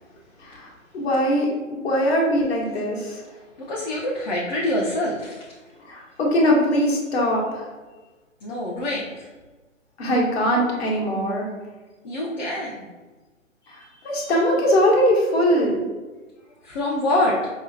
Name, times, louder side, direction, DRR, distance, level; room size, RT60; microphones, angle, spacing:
voice 1, 0.4-3.2 5.8-7.7 10.0-11.5 13.7-15.8, equal, 50° left, -2 dB, 1.1 m, -21 dB
voice 2, 3.6-5.5 8.4-9.3 12.0-12.9 13.6-14.3 16.6-17.5, left 1 dB, 35° left, -4 dB, 0.6 m, -26 dB
5.3 x 2.1 x 2.6 m, 1.2 s
figure-of-eight pair, 130°, 39 cm